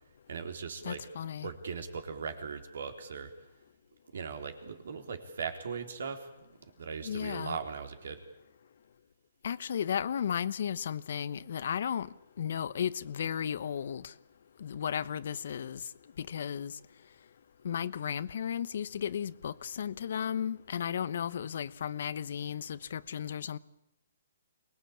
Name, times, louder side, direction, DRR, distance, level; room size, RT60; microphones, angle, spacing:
voice 1, 0.3-1.0 1.4-3.3 4.1-8.2, right 5 dB, 70° right, 3.8 m, -39 dB
voice 2, 0.8-1.5 7.0-7.6 9.4-12.1 12.4-14.1 14.6-15.8 16.2-16.8 17.6-23.6, left 8 dB, 65° left, 1.0 m, -34 dB
24.0 x 20.0 x 8.7 m
hypercardioid pair, 150°, 0 cm